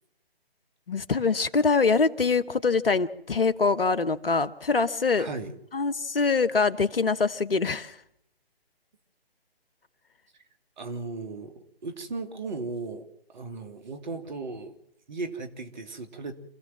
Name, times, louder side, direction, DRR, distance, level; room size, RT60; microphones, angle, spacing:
voice 1, 0.9-5.3 5.7-7.9, left 4 dB, 65° left, 13 dB, 1.4 m, -24 dB
voice 2, 5.2-5.5 10.8-14.8 15.1-16.3, right 3 dB, 50° right, 7 dB, 2.8 m, -36 dB
27.0 x 16.0 x 7.5 m, 0.77 s
figure-of-eight pair, 140°, 30 cm